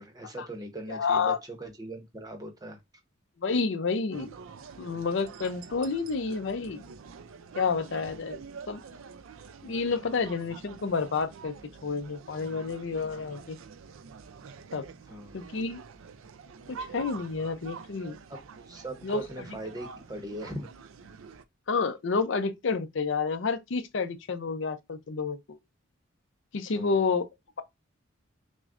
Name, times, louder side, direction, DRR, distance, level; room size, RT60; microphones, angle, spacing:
voice 1, 0.0-2.8 15.1-15.4 18.7-20.7 26.7-27.0, right 1 dB, 20° right, 0.7 m, -40 dB
voice 2, 0.9-1.4 3.4-4.3 4.8-6.8 7.6-8.4 8.7-8.8 9.6-11.5 11.8-13.6 14.7-14.9 15.3-15.8 16.7-18.2 19.0-19.6 21.7-25.6 26.5-27.3, left 4 dB, 65° left, 0.5 m, -29 dB
sound 1, 4.1-21.4, right 5 dB, 85° right, 0.4 m, -46 dB
6.0 x 2.1 x 2.5 m
head